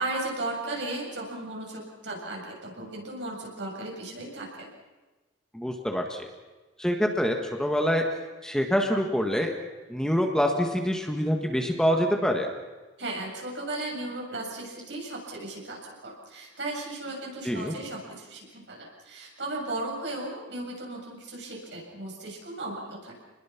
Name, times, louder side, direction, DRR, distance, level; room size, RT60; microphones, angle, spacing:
voice 1, 0.0-4.7 13.0-23.2, right 2 dB, 75° right, -1 dB, 7.4 m, -36 dB
voice 2, 5.5-6.2 6.8-8.0 8.4-9.5 9.9-12.5 17.4-17.8, equal, 5° left, 2 dB, 1.7 m, -25 dB
27.5 x 21.0 x 6.0 m, 1.2 s
head